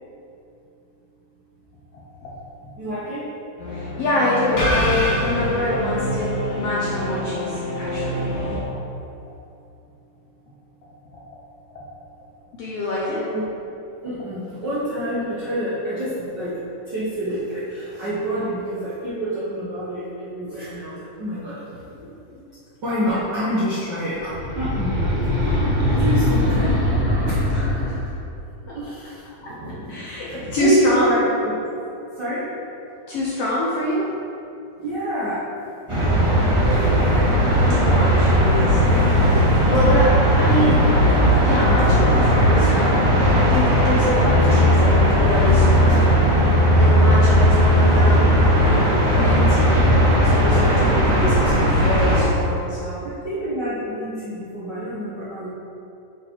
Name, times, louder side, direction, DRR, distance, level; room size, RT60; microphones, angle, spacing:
voice 1, 1.9-2.3 3.7-8.3 11.1-11.2 12.5-13.2 22.0-22.5 23.0-23.2 27.5-28.0 28.7-28.8 29.4-29.6 29.9-31.0 33.1-34.1 37.7-38.8 39.7-40.9 41.4-46.1 46.8-49.9 50.2-53.0, left 1 dB, 70° left, -6 dB, 1.5 m, -26 dB
voice 2, 2.8-3.3 7.5-8.8 13.1-13.6 14.0-16.6 16.9-21.8 22.8-25.0 25.4-25.6 25.9-26.8 27.2-28.0 28.7-31.5 32.1-32.5 34.8-35.5 53.0-55.5, equal, 60° right, -11 dB, 1.1 m, -27 dB
sound 1, 3.6-8.6, equal, 50° left, 1.5 m, -26 dB
sound 2, 24.2-28.1, left 1 dB, 80° right, 0.4 m, -21 dB
sound 3, 35.9-52.2, equal, 25° right, 0.6 m, -16 dB
7.6 x 4.2 x 4.5 m, 2.7 s
omnidirectional pair, 3.6 m